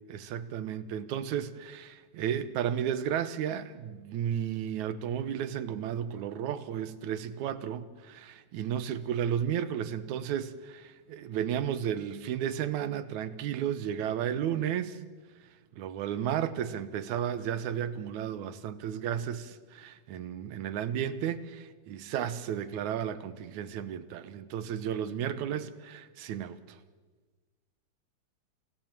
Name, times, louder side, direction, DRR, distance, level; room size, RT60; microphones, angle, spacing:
voice 1, 0.1-15.0 15.7-26.8, right 9 dB, 85° right, 2.4 m, -33 dB
27.5 x 16.5 x 7.4 m
omnidirectional pair, 3.4 m